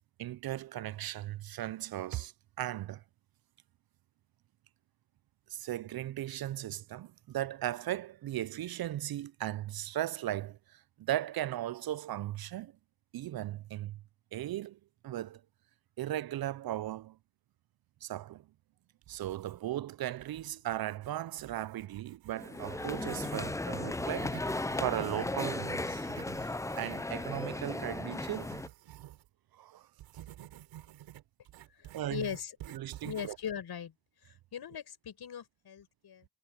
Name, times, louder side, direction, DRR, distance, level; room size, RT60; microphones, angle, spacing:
voice 1, 0.2-2.3 2.6-3.0 5.5-12.7 13.1-14.0 14.3-14.8 15.0-15.4 16.0-17.2 18.0-18.4 19.1-24.4 24.8-26.1 26.4-26.5 26.8-28.6 29.5-29.9 31.9-32.3 32.7-33.4, right 13 dB, 55° right, 0.6 m, -37 dB
sound 1, 19.0-19.8 20.2-23.5 23.9-29.3 30.0-33.5, right 13 dB, 85° right, 5.4 m, -51 dB
sound 2, 22.3-28.7, left 2 dB, 5° left, 0.5 m, -36 dB
voice 2, 31.7-32.7 33.0-33.9 34.2-36.3, left 8 dB, 60° left, 6.1 m, -40 dB
supercardioid pair, 65°, 43 cm